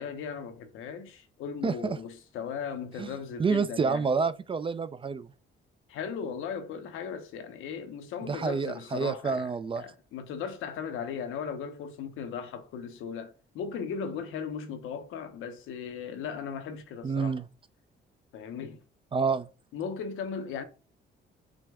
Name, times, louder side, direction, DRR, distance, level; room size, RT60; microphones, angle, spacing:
voice 1, 0.0-4.1 5.9-17.4 18.3-18.8 19.7-20.6, left 6 dB, 85° left, 0.8 m, -37 dB
voice 2, 1.6-2.0 3.0-3.1 3.4-5.3 8.2-9.8 17.0-17.4 19.1-19.5, right 5 dB, 25° right, 0.3 m, -28 dB
6.1 x 2.2 x 3.5 m
cardioid pair, 90°, 20 cm